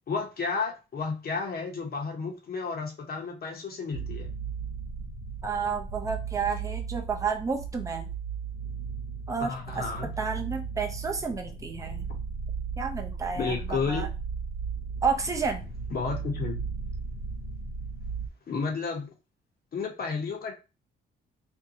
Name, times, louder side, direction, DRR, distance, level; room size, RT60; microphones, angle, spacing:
voice 1, 0.1-4.3 9.4-10.1 13.3-14.0 15.9-16.6 18.5-19.1 19.7-20.5, left 4 dB, 50° left, 2 dB, 0.9 m, -32 dB
sound 1, 3.9-18.3, right 5 dB, 85° left, 0.5 m, -36 dB
voice 2, 5.4-8.1 9.3-9.8 10.2-12.1 12.8-14.1 15.0-15.7, right 5 dB, 15° right, 3 dB, 0.5 m, -31 dB
2.6 x 2.2 x 2.7 m, 0.30 s
cardioid pair, 90°, 20 cm